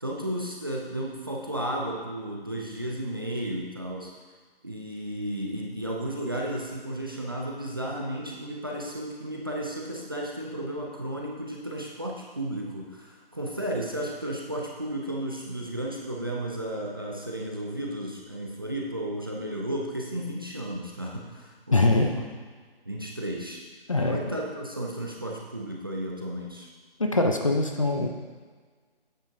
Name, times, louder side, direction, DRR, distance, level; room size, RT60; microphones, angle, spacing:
voice 1, 0.0-4.1 4.6-22.2 22.9-23.6 24.0-26.7, right 1 dB, 25° right, -2 dB, 0.5 m, -33 dB
voice 2, 21.7-22.1 23.9-24.2 27.0-28.1, left 2 dB, 35° left, 3 dB, 0.5 m, -23 dB
8.9 x 7.0 x 2.7 m, 1.5 s
figure-of-eight pair, 150°, 30 cm